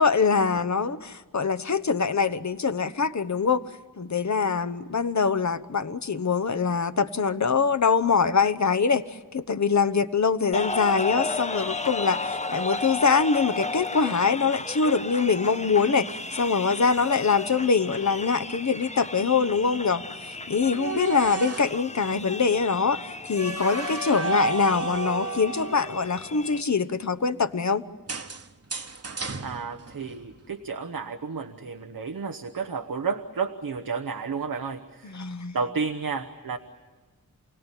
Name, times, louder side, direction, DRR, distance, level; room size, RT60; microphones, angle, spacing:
voice 1, 0.0-3.6 4.0-9.0 9.3-27.8 35.0-35.6, left 5 dB, 55° left, 11 dB, 1.0 m, -24 dB
sound 1, 10.5-26.6, left 3 dB, 20° left, 0.7 m, -34 dB
sound 2, 20.6-21.8 23.3-26.3 28.1-30.3, right 4 dB, 45° right, 1.2 m, -33 dB
voice 2, 29.4-35.1 35.5-36.6, right 5 dB, 90° right, 6 dB, 1.1 m, -31 dB
28.5 x 18.0 x 10.0 m, 1.4 s
wide cardioid pair, 65°, 34 cm